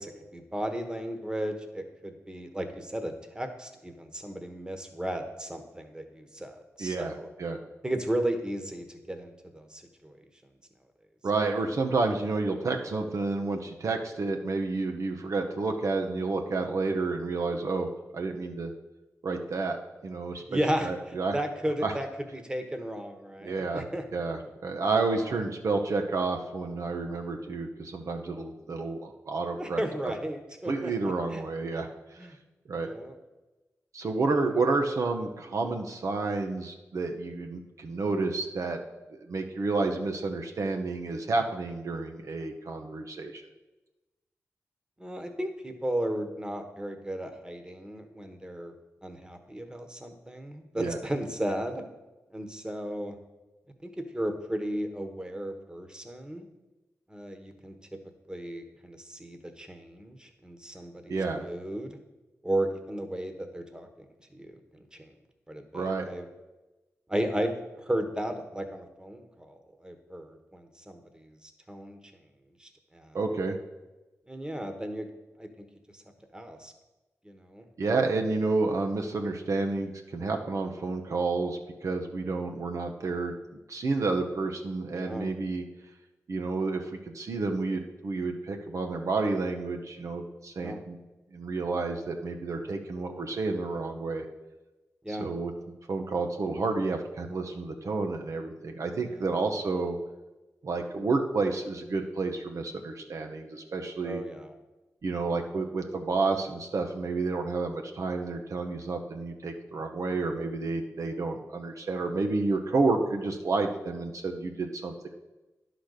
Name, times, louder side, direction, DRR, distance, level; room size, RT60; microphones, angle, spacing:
voice 1, 0.0-7.3 7.8-10.2 20.4-24.0 25.1-25.4 29.5-31.4 32.2-32.4 32.8-33.1 45.0-48.7 49.0-51.8 52.3-53.1 53.8-56.5 57.1-57.8 58.3-62.0 62.4-63.9 64.3-64.6 65.0-65.1 65.5-66.3 67.1-72.0 72.6-73.2 74.3-75.1 75.4-75.6 75.9-76.0 76.3-76.7 77.2-77.7 84.9-85.3 90.6-90.8 95.0-95.3 99.2-99.3 104.0-104.5, right 1 dB, 15° right, 5 dB, 1.2 m, -35 dB
voice 2, 6.8-7.6 11.2-18.7 19.2-19.8 20.0-21.4 21.8-21.9 23.4-23.9 24.1-29.8 30.7-32.3 32.7-32.9 33.9-38.8 39.1-43.4 50.7-51.0 61.1-61.4 65.7-66.1 73.1-73.6 77.8-83.3 83.7-85.6 86.3-91.0 91.3-94.2 95.1-95.5 95.9-100.0 100.6-104.2 105.0-115.1, right 3 dB, 65° right, 3 dB, 0.9 m, -30 dB
10.5 x 4.0 x 6.5 m, 1.1 s
cardioid pair, 50°, 6 cm